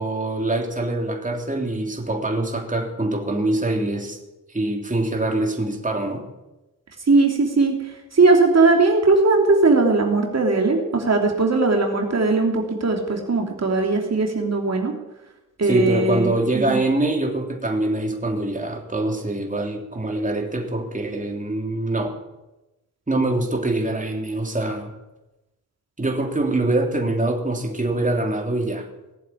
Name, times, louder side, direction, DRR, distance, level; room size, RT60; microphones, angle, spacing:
voice 1, 0.0-4.2 4.5-6.3 15.6-22.1 23.1-24.9 26.0-28.9, right 2 dB, 20° right, 2 dB, 3.3 m, -24 dB
voice 2, 7.1-14.9 15.6-16.8, right 3 dB, 45° right, 2 dB, 3.1 m, -19 dB
19.0 x 7.5 x 9.8 m, 0.99 s
supercardioid pair, 50°, 35 cm